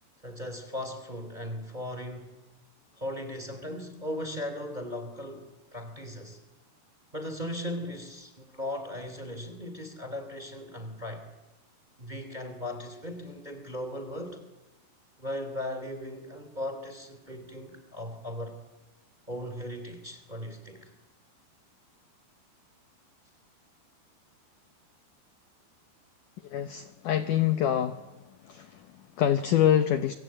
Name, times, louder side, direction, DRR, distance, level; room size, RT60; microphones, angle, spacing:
voice 1, 0.2-2.3 3.0-6.4 7.1-11.3 12.0-14.4 15.2-18.6 19.3-20.9, left 1 dB, 10° right, 8 dB, 2.6 m, -37 dB
voice 2, 26.5-28.1 28.4-30.1, left 10 dB, 70° left, 9 dB, 2.0 m, -26 dB
26.5 x 25.0 x 8.8 m, 1.1 s
omnidirectional pair, 4.9 m